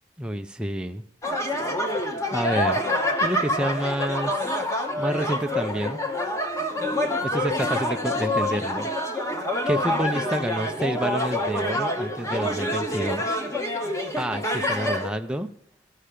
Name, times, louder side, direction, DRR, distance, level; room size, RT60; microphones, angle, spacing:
voice 1, 0.2-1.0 2.3-2.8 3.2-4.5 5.0-6.0 7.2-8.9 9.7-13.4 13.8-15.5, right 1 dB, 5° right, 5 dB, 0.4 m, -29 dB
sound 1, 1.2-15.1, left 1 dB, 15° left, 0.9 m, -26 dB
13.5 x 5.7 x 4.9 m, 0.77 s
head